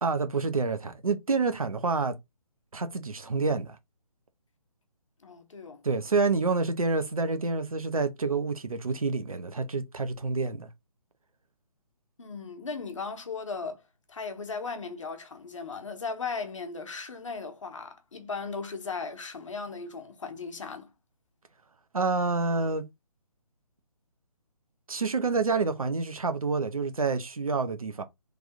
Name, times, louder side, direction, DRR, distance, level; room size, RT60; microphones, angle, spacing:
voice 1, 0.0-2.1 2.7-3.8 5.8-10.7 21.9-22.8 24.9-28.0, right 4 dB, 70° right, 0.8 m, -28 dB
voice 2, 5.2-5.8 12.2-13.8 14.1-20.9, left 4 dB, 55° left, 1.0 m, -37 dB
3.4 x 2.6 x 3.5 m
figure-of-eight pair, 145°, 19 cm